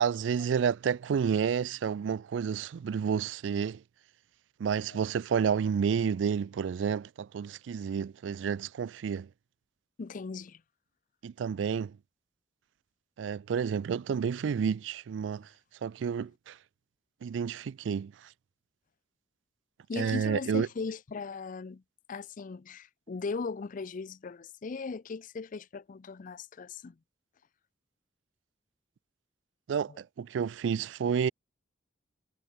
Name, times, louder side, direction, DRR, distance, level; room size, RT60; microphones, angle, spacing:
voice 1, 0.0-3.8 4.6-9.3 11.2-11.9 13.2-15.5 15.8-16.6 17.2-18.1 20.0-20.7 29.7-31.3, right 7 dB, 85° right, 0.3 m, -30 dB
voice 2, 10.0-10.6 19.9-21.8 22.1-26.9 29.9-30.0, left 4 dB, 45° left, 0.4 m, -38 dB
head